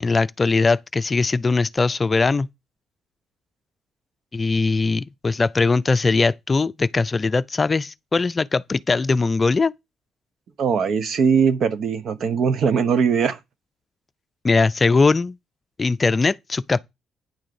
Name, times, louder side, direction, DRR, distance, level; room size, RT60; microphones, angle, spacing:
voice 1, 0.0-2.5 4.3-9.7 14.4-15.4 15.8-16.8, left 3 dB, 30° left, 0.4 m, -20 dB
voice 2, 10.6-13.4, right 6 dB, 60° right, 1.2 m, -20 dB
9.8 x 3.8 x 6.9 m
cardioid pair, 90°, 0 cm